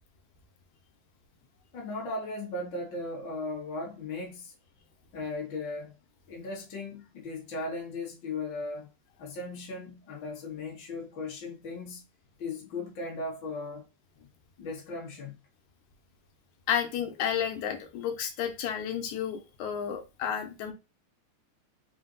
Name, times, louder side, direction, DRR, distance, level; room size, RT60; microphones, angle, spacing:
voice 1, 1.7-4.5 5.1-5.9 6.3-8.9 9.2-12.0 12.4-13.9 14.2-14.3 14.6-15.4, left 2 dB, 55° left, 1.4 m, -37 dB
voice 2, 16.7-20.7, left 9 dB, 80° left, 2.1 m, -31 dB
4.9 x 2.2 x 3.8 m
omnidirectional pair, 3.4 m